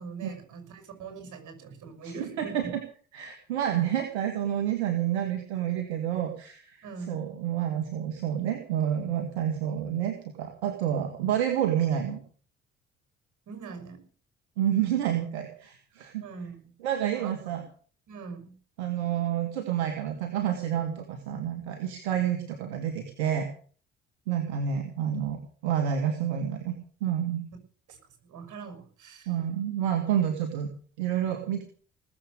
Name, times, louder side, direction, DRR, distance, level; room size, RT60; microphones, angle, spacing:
voice 1, 0.0-2.7 6.8-7.2 13.5-14.0 16.2-16.7 17.1-17.7 18.1-18.5 27.9-29.4, right 5 dB, 60° right, 7 dB, 6.0 m, -42 dB
voice 2, 2.0-2.8 3.1-12.2 14.6-16.2 16.8-17.6 18.8-23.5 24.3-26.7 27.0-27.4 29.3-30.7 31.0-31.6, right 10 dB, 80° right, 5 dB, 2.0 m, -29 dB
19.0 x 7.8 x 8.2 m, 0.43 s
hypercardioid pair, 45°, 33 cm